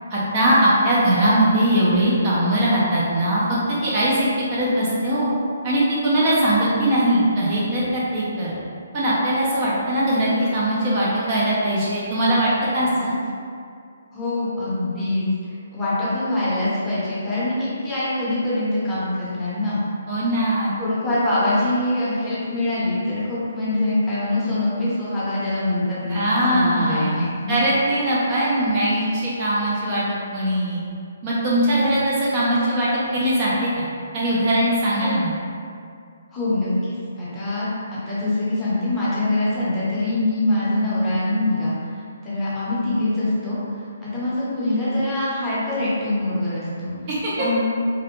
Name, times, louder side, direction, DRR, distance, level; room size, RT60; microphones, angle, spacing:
voice 1, 0.1-3.4 3.7-5.3 5.6-8.5 8.9-13.2 20.1-20.7 26.1-30.0 30.3-30.8 31.2-33.9 34.1-35.3 47.1-47.3, right 1 dB, 30° right, -7 dB, 0.4 m, -21 dB
voice 2, 12.8-13.1 14.1-19.8 20.8-27.5 31.7-32.0 34.9-35.1 36.3-46.9 47.4-47.6, left 1 dB, 10° left, -11 dB, 0.7 m, -24 dB
2.5 x 2.0 x 2.8 m, 2.3 s
hypercardioid pair, 160°, 0 cm